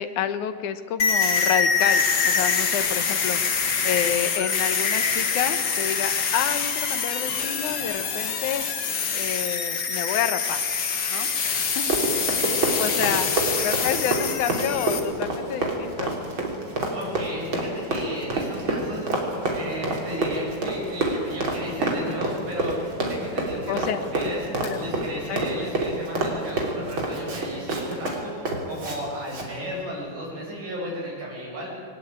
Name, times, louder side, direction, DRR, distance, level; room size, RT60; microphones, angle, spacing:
voice 1, 0.0-3.4 3.8-8.6 9.1-10.7 11.1-11.9 12.5-16.3 23.7-24.0 24.6-24.9 25.3-25.4, left 9 dB, 70° left, 10 dB, 2.5 m, -29 dB
sound 1, 1.0-15.0, left 5 dB, 40° left, 1.7 m, -25 dB
Run, 11.6-29.0 29.3-29.5, right 2 dB, 40° right, 3.8 m, -27 dB
voice 2, 12.4-13.3 16.9-19.1 19.5-24.4 24.8-31.7, equal, 70° right, -4 dB, 9.3 m, -34 dB
21.0 x 19.5 x 8.9 m, 2.3 s
omnidirectional pair, 3.8 m